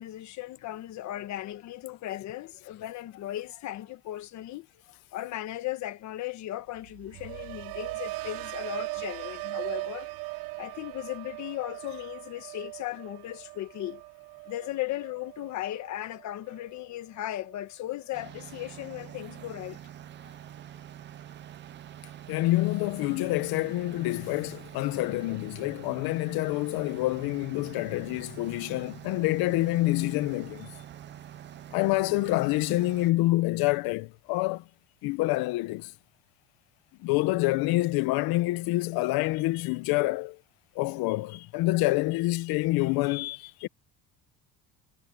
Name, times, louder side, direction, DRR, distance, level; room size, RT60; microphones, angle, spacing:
voice 1, 0.0-4.7 5.1-10.1 10.6-14.0 14.5-19.8 20.2-20.3, left 14 dB, 50° left, 1.4 m, -37 dB
sound 1, 6.8-16.8 17.2-17.6, right 24 dB, 70° right, 0.6 m, -39 dB
sound 2, 18.1-33.1, right 11 dB, 30° right, 0.5 m, -46 dB
voice 2, 22.3-30.7 31.7-34.6 35.0-35.9 37.0-40.4 40.7-43.7, left 19 dB, 75° left, 1.0 m, -27 dB
cardioid pair, 180°, 37 cm